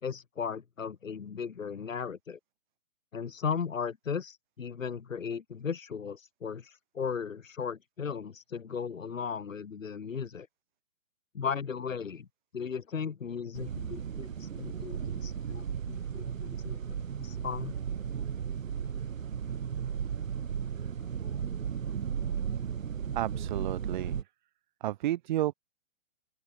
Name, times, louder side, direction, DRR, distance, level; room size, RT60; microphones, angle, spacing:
voice 1, 0.0-2.4 3.1-10.5 11.3-12.3 12.5-17.8, left 6 dB, 80° left, 3.7 m, -36 dB
sound 1, 13.5-24.2, right 7 dB, 90° right, 1.2 m, -35 dB
voice 2, 23.1-24.2 24.8-25.5, right 14 dB, 35° right, 1.8 m, -31 dB
open air
hypercardioid pair, 155°, 39 cm